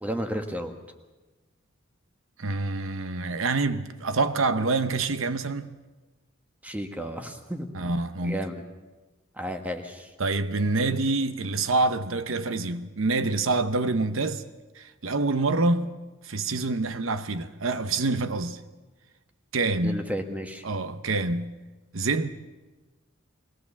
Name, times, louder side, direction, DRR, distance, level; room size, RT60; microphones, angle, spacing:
voice 1, 0.0-0.7 6.6-7.7 8.2-8.5 9.4-10.1 19.8-20.6, equal, 5° right, 1.4 m, -32 dB
voice 2, 2.4-5.7 7.7-8.4 10.2-14.4 14.7-16.0 16.2-18.6 19.5-20.1 20.6-21.6 21.9-22.3, right 3 dB, 80° right, 0.8 m, -26 dB
22.0 x 18.0 x 7.0 m
head